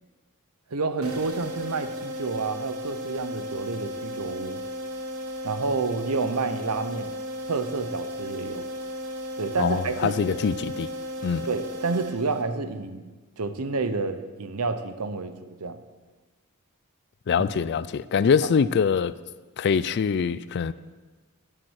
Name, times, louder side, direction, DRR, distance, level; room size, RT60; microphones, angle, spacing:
voice 1, 0.7-4.6 5.4-7.1 7.4-8.7 9.4-10.4 11.5-13.1 13.4-15.3 15.6-15.8 17.4-17.5 18.4-18.5, right 3 dB, 85° right, 0.8 m, -29 dB
sound 1, 1.0-12.7, equal, 70° right, 1.3 m, -35 dB
voice 2, 9.6-10.9 11.2-11.5 17.3-19.2 19.6-20.7, left 6 dB, 50° left, 0.3 m, -24 dB
10.0 x 7.5 x 6.4 m
head